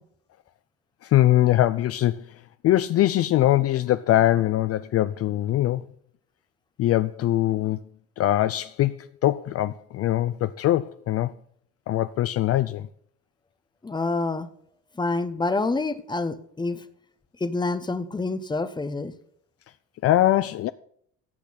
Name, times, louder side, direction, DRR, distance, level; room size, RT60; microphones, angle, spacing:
voice 1, 1.0-2.3 2.6-5.8 6.8-7.8 8.2-11.3 11.9-12.9 20.0-20.7, left 14 dB, 50° left, 0.5 m, -22 dB
voice 2, 13.8-14.5 15.0-16.8 17.4-19.1, left 3 dB, 15° left, 1.0 m, -27 dB
15.0 x 8.2 x 4.2 m
cardioid pair, 100°, 31 cm